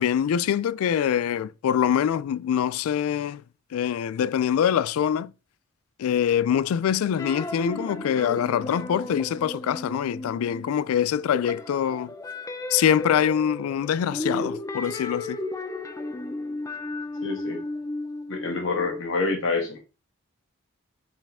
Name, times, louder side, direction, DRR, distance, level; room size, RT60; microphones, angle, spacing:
voice 1, 0.0-3.4 3.7-5.3 6.0-12.1 12.7-15.4, left 9 dB, 85° left, 0.3 m, -24 dB
sound 1, 7.2-10.9 11.2-19.0, left 2 dB, 15° left, 0.5 m, -34 dB
voice 2, 17.2-17.6 18.3-19.8, left 3 dB, 65° left, 1.9 m, -27 dB
5.6 x 4.7 x 3.5 m
head